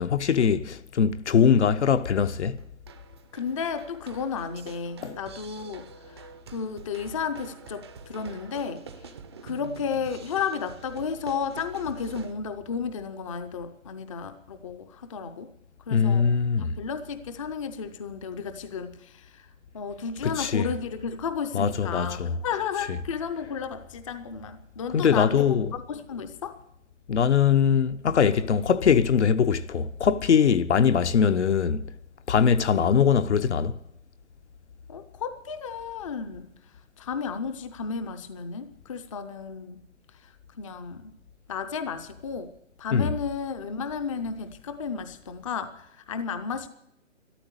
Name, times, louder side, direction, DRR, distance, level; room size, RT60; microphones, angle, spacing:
voice 1, 0.0-2.6 5.0-5.2 15.9-16.7 20.2-20.7 21.5-22.3 24.9-25.7 27.1-31.8 32.3-33.7 42.9-43.1, left 7 dB, 60° left, 0.9 m, -22 dB
sound 1, 1.9-12.3, right 6 dB, 20° right, 0.6 m, -47 dB
voice 2, 3.3-9.1 9.4-15.5 15.9-16.3 16.6-26.6 34.9-36.5 37.0-39.8 40.1-41.1 41.5-46.7, left 6 dB, 25° left, 0.6 m, -33 dB
13.0 x 12.0 x 8.1 m
hypercardioid pair, 150°, 38 cm